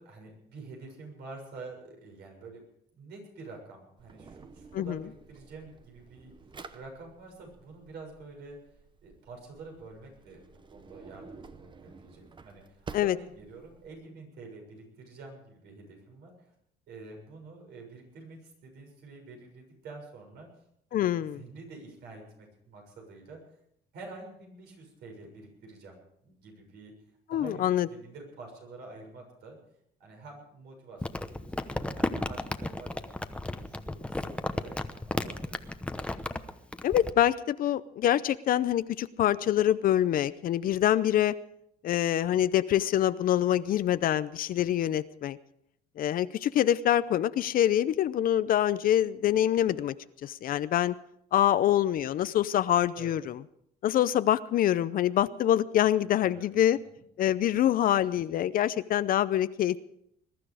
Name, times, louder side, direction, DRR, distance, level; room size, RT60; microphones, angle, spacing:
voice 1, 0.0-2.6 2.9-6.3 6.7-8.6 9.0-16.5 16.9-20.5 20.9-23.4 23.9-26.9 27.3-29.6 30.0-31.4 31.8-33.1 33.6-34.8 35.1-35.7 52.9-53.2 56.0-56.5, right 3 dB, 75° right, 1 dB, 6.7 m, -48 dB
Drawer open or close, 4.0-13.9, right 4 dB, 30° right, 0.9 m, -50 dB
voice 2, 20.9-21.4 27.3-27.9 36.8-41.4 41.8-45.4 46.0-49.9 50.2-50.9 51.3-53.4 53.8-56.8 57.2-59.8, left 11 dB, 55° left, 15 dB, 0.6 m, -25 dB
Crumpling crinkling, 31.0-37.1, left 1 dB, 5° left, 0.9 m, -34 dB
21.5 x 12.0 x 5.0 m, 0.73 s
cardioid pair, 110°, 17 cm